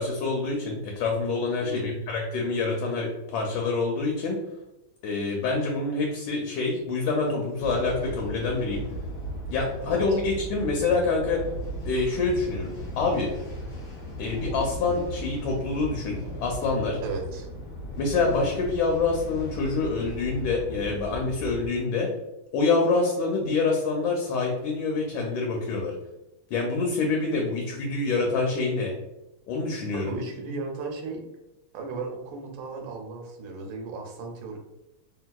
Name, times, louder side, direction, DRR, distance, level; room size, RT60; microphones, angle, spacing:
voice 1, 0.0-4.4 5.0-8.8 9.5-11.4 11.8-13.3 14.2-17.0 18.0-22.1 22.5-25.9 26.5-28.9 29.5-30.1, left 3 dB, 75° left, 0 dB, 1.3 m, -26 dB
voice 2, 1.6-2.0 9.8-10.2 17.0-17.5 29.9-31.2 31.7-34.6, right 3 dB, 75° right, 2 dB, 1.3 m, -35 dB
sound 1, 7.6-21.7, equal, 45° left, 1.1 m, -37 dB
3.2 x 2.7 x 2.2 m, 0.95 s
omnidirectional pair, 2.2 m